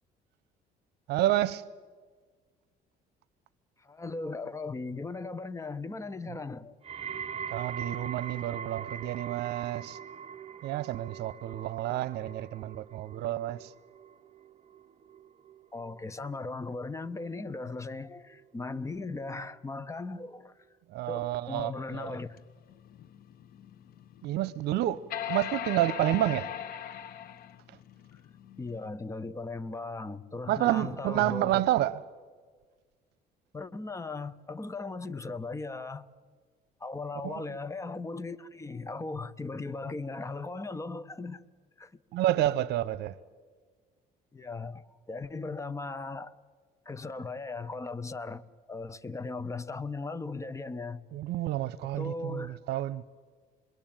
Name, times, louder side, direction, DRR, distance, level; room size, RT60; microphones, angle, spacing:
voice 1, 1.1-1.6 7.5-10.0 10.6-13.7 20.9-22.2 24.2-26.5 30.5-32.0 37.2-37.4 42.1-43.2 51.1-53.0, right 14 dB, 80° right, 0.8 m, -29 dB
voice 2, 3.8-6.7 15.7-20.5 21.1-22.4 28.6-31.6 33.5-36.1 36.8-41.4 41.8-41.9 44.3-46.3 46.8-51.0 52.0-52.6, left 3 dB, 15° left, 1.1 m, -38 dB
sound 1, 6.8-18.0 18.3-18.8 19.5-19.6, right 7 dB, 35° right, 0.9 m, -43 dB
sound 2, 22.4-28.9, left 10 dB, 65° left, 1.2 m, -40 dB
28.0 x 22.0 x 9.0 m
cardioid pair, 110°, 17 cm